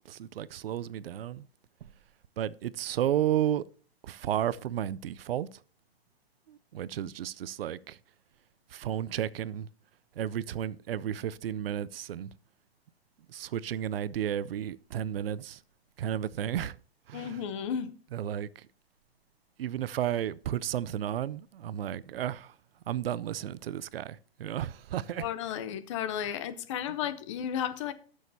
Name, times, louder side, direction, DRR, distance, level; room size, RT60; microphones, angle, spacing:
voice 1, 0.0-1.5 2.4-3.6 4.0-5.5 6.5-8.0 8.7-9.7 10.2-12.3 13.3-15.6 16.0-16.8 17.1-17.4 18.1-18.7 19.6-22.5 22.9-25.3 26.3-26.4 26.9-27.0, right 10 dB, 65° right, 0.6 m, -33 dB
voice 2, 17.1-17.9 25.2-27.9, left 9 dB, 30° left, 0.6 m, -33 dB
18.0 x 6.4 x 2.7 m
hypercardioid pair, 155°, 31 cm